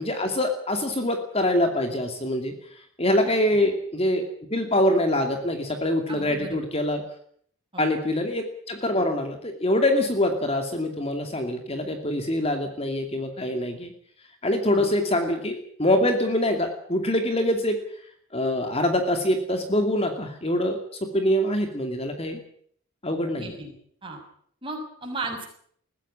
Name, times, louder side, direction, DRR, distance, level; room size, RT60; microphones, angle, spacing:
voice 1, 0.0-2.5 3.0-4.2 4.5-7.0 7.8-13.9 14.4-17.8 18.3-22.4 23.0-23.6, left 1 dB, 30° left, 5 dB, 2.6 m, -24 dB
voice 2, 6.1-6.6 7.7-7.9 14.7-14.9 23.4-23.7 24.0-24.2 24.6-25.5, right 2 dB, 25° right, 2 dB, 6.5 m, -35 dB
21.5 x 15.5 x 9.9 m, 0.62 s
head